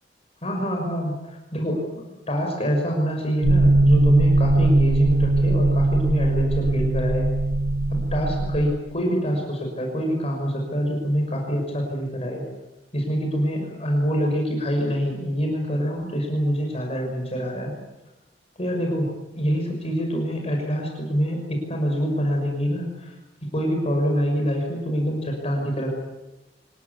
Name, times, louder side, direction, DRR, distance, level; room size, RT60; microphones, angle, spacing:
voice 1, 0.4-7.3 7.9-12.4 12.9-17.7 18.6-23.1 23.5-26.0, equal, 35° left, 1 dB, 6.0 m, -25 dB
sound 1, 3.4-8.6, right 2 dB, 50° right, 2.0 m, -20 dB
27.5 x 16.5 x 9.8 m, 1.0 s
head